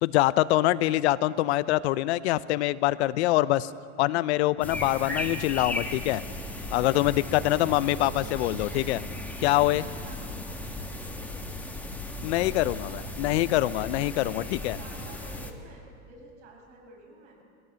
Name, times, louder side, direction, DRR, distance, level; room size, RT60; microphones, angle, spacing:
voice 1, 0.0-3.7 4.0-6.2 6.7-9.0 9.4-9.9 12.2-14.8, left 16 dB, 60° left, 17 dB, 0.6 m, -24 dB
sound 1, 4.6-15.5, left 1 dB, 5° left, 1.5 m, -36 dB
voice 2, 7.4-8.0 8.3-8.8 9.4-11.5 12.3-13.6 14.3-17.4, right 3 dB, 65° right, -1 dB, 7.2 m, -51 dB
20.5 x 17.0 x 7.5 m, 2.3 s
supercardioid pair, 130°, 38 cm